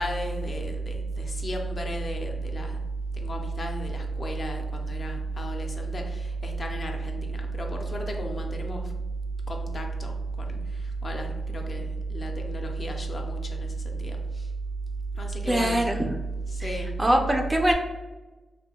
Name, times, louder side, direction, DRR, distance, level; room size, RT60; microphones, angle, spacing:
voice 1, 0.0-2.8 3.2-8.9 9.5-14.5 15.1-15.8 16.5-16.9, right 2 dB, 40° left, 2 dB, 0.4 m, -31 dB
voice 2, 15.4-16.1 16.6-17.7, right 1 dB, 15° right, 2 dB, 0.4 m, -23 dB
2.6 x 2.2 x 2.8 m, 1.1 s
cardioid pair, 85°, 0 cm